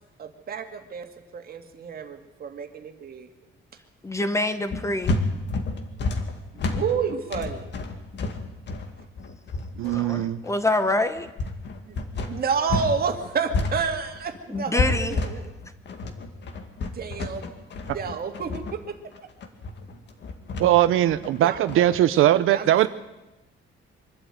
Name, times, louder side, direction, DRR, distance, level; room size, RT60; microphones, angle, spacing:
voice 1, 0.2-3.3 6.5-7.7 9.0-9.1 11.9-12.0 12.3-15.5 16.8-17.5 17.9-19.0 21.3-22.8, right 6 dB, 45° right, 6 dB, 2.2 m, -30 dB
voice 2, 4.0-5.2 9.8-11.3 14.5-15.2, left 2 dB, 15° left, 10 dB, 1.1 m, -26 dB
sound 1, 4.7-13.0 13.2-22.0, left 3 dB, 60° left, 2.2 m, -30 dB
voice 3, 9.8-10.4 20.6-22.9, right 13 dB, 85° right, 12 dB, 0.8 m, -20 dB
24.0 x 12.5 x 9.3 m, 0.99 s
cardioid pair, 145°, 21 cm